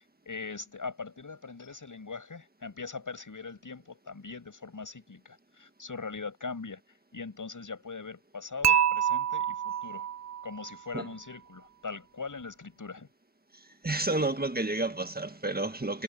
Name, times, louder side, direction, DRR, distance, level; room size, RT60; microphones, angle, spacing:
voice 1, 0.0-6.8 7.1-10.1 10.4-13.1, left 4 dB, 70° left, 7.3 m, -41 dB
Dishes pots and pans / Chink clink, 8.6-10.8, right 10 dB, 55° right, 0.6 m, -27 dB
voice 2, 13.8-16.0, right 2 dB, 30° right, 1.7 m, -30 dB
cardioid pair, 40°, 33 cm